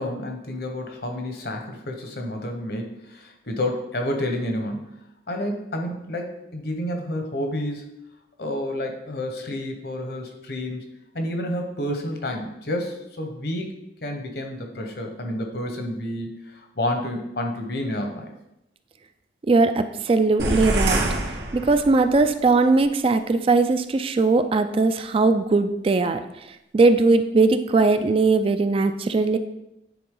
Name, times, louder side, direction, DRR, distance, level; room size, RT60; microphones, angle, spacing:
voice 1, 0.0-4.9 5.3-7.9 8.4-10.8 11.1-13.7 14.0-16.3 16.8-18.3, left 1 dB, 60° left, 3 dB, 1.1 m, -29 dB
voice 2, 19.5-21.0 21.5-26.2 26.7-29.4, right 3 dB, 30° right, 9 dB, 0.3 m, -19 dB
sound 1, 20.4-22.2, right 2 dB, 85° right, 1.1 m, -25 dB
9.3 x 4.0 x 3.8 m, 0.86 s
head